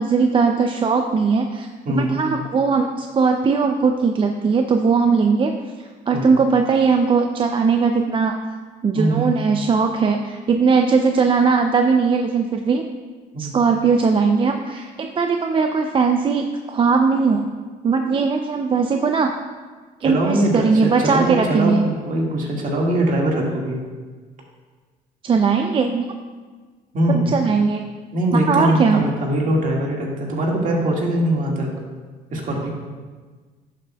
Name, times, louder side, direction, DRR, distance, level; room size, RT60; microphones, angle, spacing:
voice 1, 0.0-1.7 1.9-5.5 5.8-8.4 8.8-12.9 13.4-17.5 17.8-19.3 20.0-21.8 25.2-26.1 27.3-27.8 28.4-29.1, right 5 dB, 30° right, 4 dB, 0.5 m, -19 dB
voice 2, 8.9-9.3 13.3-13.6 20.0-23.8 26.9-27.3 28.1-31.7 32.3-32.7, right 1 dB, 50° right, -1 dB, 1.9 m, -21 dB
11.0 x 7.6 x 2.3 m, 1.4 s
cardioid pair, 110°, 17 cm